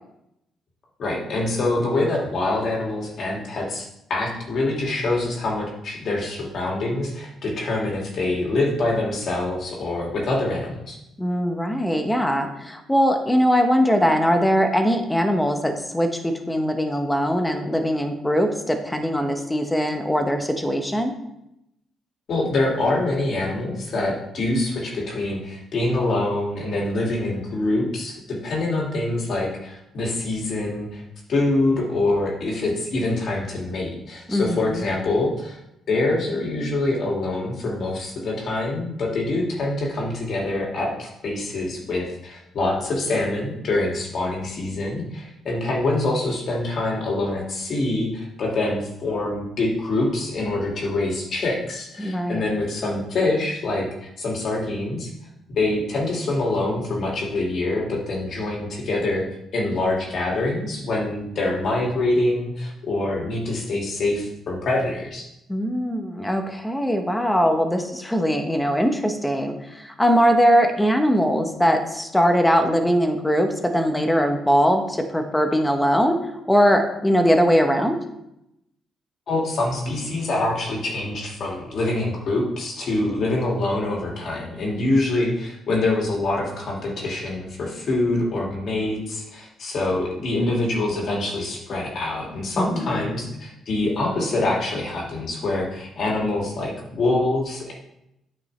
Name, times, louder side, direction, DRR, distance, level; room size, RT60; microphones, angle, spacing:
voice 1, 1.0-11.0 22.3-31.0 31.3-35.6 35.9-55.1 55.5-59.2 59.5-65.3 79.3-97.7, left 2 dB, 60° left, -2 dB, 2.2 m, -25 dB
voice 2, 11.2-21.1 34.3-34.8 52.0-52.5 65.5-76.2 76.5-78.0 92.6-93.2, equal, 10° left, 5 dB, 1.0 m, -21 dB
9.0 x 5.3 x 3.3 m, 0.84 s
cardioid pair, 90°, 0 cm